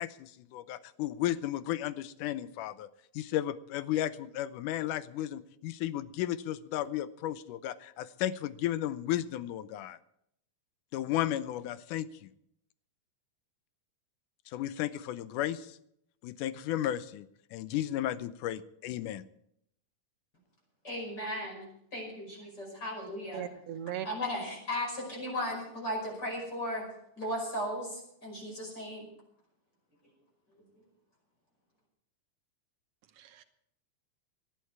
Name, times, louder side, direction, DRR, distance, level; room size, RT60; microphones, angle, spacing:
voice 1, 0.0-2.9 3.1-10.0 10.9-12.3 14.5-15.8 16.2-19.2, left 12 dB, 90° left, 15 dB, 2.2 m, -34 dB
voice 2, 20.8-21.6 21.9-23.4 24.0-26.9 27.2-29.1, equal, 30° left, -1 dB, 6.0 m, -36 dB
voice 3, 23.3-24.1 33.2-33.4, right 11 dB, 65° right, 9 dB, 2.0 m, -38 dB
19.0 x 12.0 x 4.7 m, 0.73 s
omnidirectional pair, 3.6 m